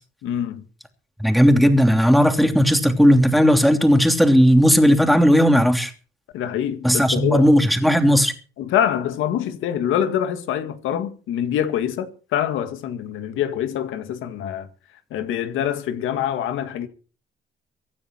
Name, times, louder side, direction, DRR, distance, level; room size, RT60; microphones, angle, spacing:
voice 1, 0.2-0.6 6.3-7.5 8.6-14.7 15.1-16.9, left 10 dB, 90° left, 1.9 m, -25 dB
voice 2, 1.2-5.9 6.8-8.3, equal, ahead, 3.0 m, -16 dB
24.5 x 9.6 x 4.5 m
cardioid pair, 90°, 20 cm